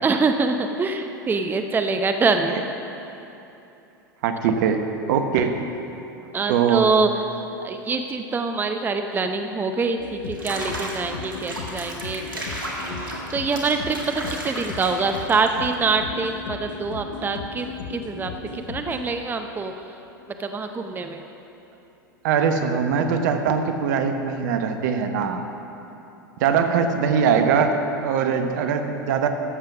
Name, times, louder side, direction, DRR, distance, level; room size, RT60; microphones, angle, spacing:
voice 1, 0.0-2.6 6.3-12.2 12.9-19.7 20.4-21.2, right 4 dB, 20° right, 6 dB, 0.6 m, -25 dB
voice 2, 4.2-5.6 6.5-6.9 22.2-25.4 26.4-29.3, right 6 dB, 60° right, 6 dB, 1.0 m, -22 dB
sound 1, 10.0-19.5, left 4 dB, 70° left, 0.9 m, -36 dB
Water / Bathtub (filling or washing), 10.3-15.7, right 1 dB, 90° right, 1.9 m, -34 dB
12.5 x 7.6 x 6.0 m, 2.9 s
hypercardioid pair, 90°, 11 cm